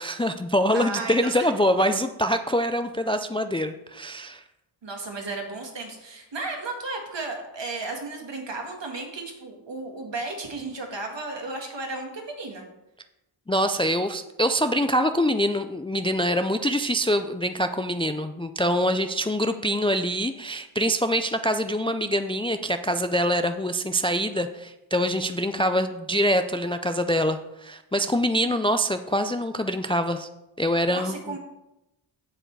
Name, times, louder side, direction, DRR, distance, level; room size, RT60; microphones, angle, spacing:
voice 1, 0.0-4.4 13.5-30.3 30.6-31.4, equal, 10° left, 9 dB, 0.4 m, -25 dB
voice 2, 0.7-1.5 4.8-12.6 30.9-31.4, right 3 dB, 60° right, 2 dB, 1.9 m, -34 dB
7.7 x 7.0 x 4.7 m, 0.95 s
cardioid pair, 60°, 49 cm